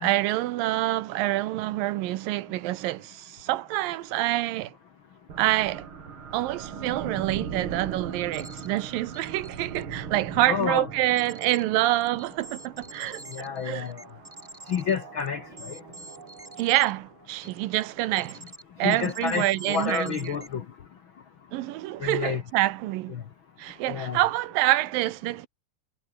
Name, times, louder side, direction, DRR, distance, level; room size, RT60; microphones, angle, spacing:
voice 1, 0.0-4.7 5.4-5.9 6.3-13.2 13.6-13.9 16.6-18.4 18.8-20.4 21.5-23.2 23.6-25.5, right 16 dB, 75° right, 2.4 m, -26 dB
sound 1, 5.3-17.3, right 6 dB, 40° right, 2.6 m, -40 dB
sound 2, 8.3-8.8 9.1-9.8 11.2-11.6 11.9-16.9 17.4-17.8 18.2-18.6 18.9-20.5, right 1 dB, 10° right, 4.5 m, -46 dB
voice 2, 10.5-10.9 13.3-13.9 14.7-15.7 18.8-20.6 22.0-22.4 23.9-24.2, left 7 dB, 80° left, 1.1 m, -29 dB
omnidirectional pair, 4.3 m